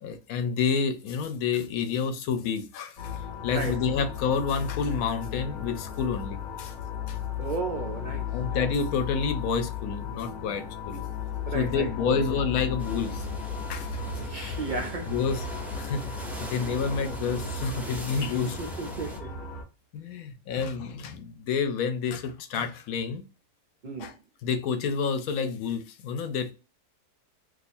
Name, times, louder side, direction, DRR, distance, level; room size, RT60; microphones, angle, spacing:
voice 1, 0.0-6.7 7.1-7.2 8.3-11.0 11.5-13.3 13.7-14.0 15.1-15.4 15.8-18.6 19.9-23.2 24.0-24.1 24.4-26.5, left 6 dB, 75° left, 1.0 m, -29 dB
sound 1, 3.0-19.6, left 6 dB, 45° left, 0.8 m, -35 dB
voice 2, 7.4-8.7 11.5-12.4 14.2-15.1 18.1-19.3 20.5-20.6 23.8-24.1, right 4 dB, 70° right, 0.4 m, -35 dB
sound 2, 12.8-19.2, equal, ahead, 0.3 m, -42 dB
2.7 x 2.4 x 4.1 m
omnidirectional pair, 1.5 m